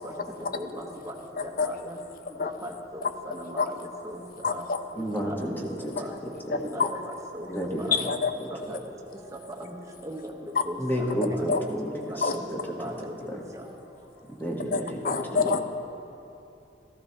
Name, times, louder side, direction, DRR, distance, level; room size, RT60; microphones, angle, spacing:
voice 1, 0.5-1.1 1.4-2.0 2.4-3.8 4.0-4.2 4.5-4.6 5.0-5.6 6.0-6.1 6.5-7.5 7.8-8.1 8.5-8.8 9.3-9.7 10.0-11.6 11.9-12.5 12.8-13.6, equal, 20° right, 0 dB, 1.0 m, -39 dB
voice 2, 4.4-4.8 6.5-6.9 7.9-8.3 11.5-11.6 12.2-12.3 14.7-15.6, left 5 dB, 50° left, 8 dB, 0.6 m, -26 dB
voice 3, 5.0-6.0 6.5-6.7 7.5-8.1 8.4-8.5 10.8-12.8 13.3-13.4 14.3-15.6, equal, 10° left, -2 dB, 1.2 m, -31 dB
14.5 x 14.0 x 2.8 m, 2.8 s
head